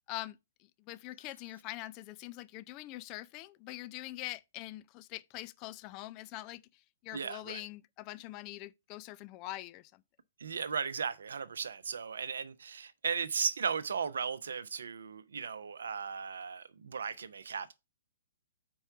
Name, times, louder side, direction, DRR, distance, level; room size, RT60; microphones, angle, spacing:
voice 1, 0.8-6.6 7.0-10.0, left 17 dB, 35° left, 0.4 m, -43 dB
voice 2, 7.1-7.6 10.4-17.7, right 6 dB, 70° right, 0.6 m, -36 dB
4.5 x 4.4 x 5.8 m
figure-of-eight pair, 120°, 0 cm